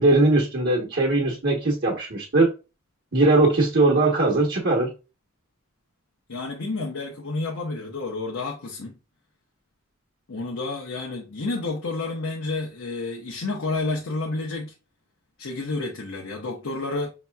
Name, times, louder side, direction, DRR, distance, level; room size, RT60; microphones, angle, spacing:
voice 1, 0.0-2.5 3.1-4.9, right 2 dB, 55° right, 1.0 m, -20 dB
voice 2, 6.3-9.0 10.3-14.7 15.4-17.1, left 3 dB, 85° left, 0.8 m, -30 dB
5.4 x 2.9 x 2.2 m
head